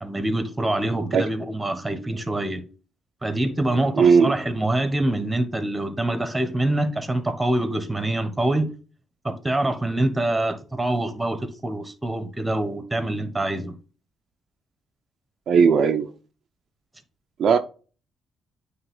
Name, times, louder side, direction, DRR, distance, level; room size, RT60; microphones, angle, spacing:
voice 1, 0.0-2.6 3.2-8.7 9.2-13.7, right 1 dB, 10° right, 1.3 m, -25 dB
voice 2, 4.0-4.3 15.5-16.1 17.4-17.6, right 6 dB, 60° right, 0.6 m, -17 dB
9.0 x 3.2 x 3.7 m
cardioid pair, 90°, 0 cm